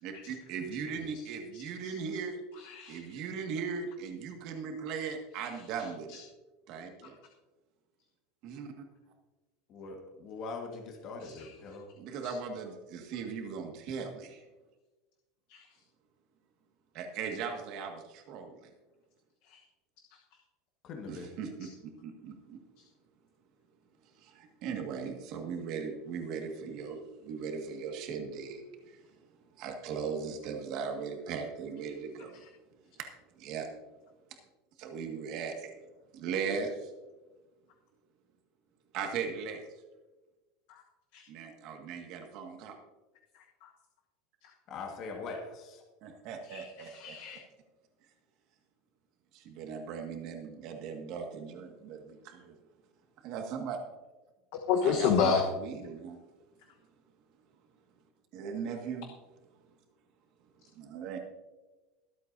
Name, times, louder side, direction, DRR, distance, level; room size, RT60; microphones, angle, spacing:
voice 1, 0.0-2.4 2.9-6.2 6.7-7.2 8.4-8.8 12.0-14.4 16.9-18.7 21.1-22.6 24.2-29.0 29.6-32.4 33.0-33.1 33.4-33.7 34.8-35.7 36.1-36.9 38.9-39.6 41.3-42.7 46.0-46.9 49.3-52.5 53.2-53.8 54.8-56.2 58.3-59.1 60.7-61.2, right 6 dB, 45° right, 3 dB, 1.8 m, -38 dB
voice 2, 1.5-2.2 2.6-3.0 5.8-6.2 7.0-7.1 11.2-11.5 12.2-12.3 15.5-15.7 19.5-19.6 21.6-21.7 40.7-40.8 43.3-43.7 44.4-44.5 46.4-46.7 47.0-47.4 54.7-55.4, left 7 dB, 55° left, 3 dB, 1.1 m, -31 dB
voice 3, 9.7-11.9 20.8-21.3 44.7-45.8, left 4 dB, 35° left, 2 dB, 1.6 m, -42 dB
22.5 x 8.1 x 2.7 m, 1.2 s
supercardioid pair, 170°, 0 cm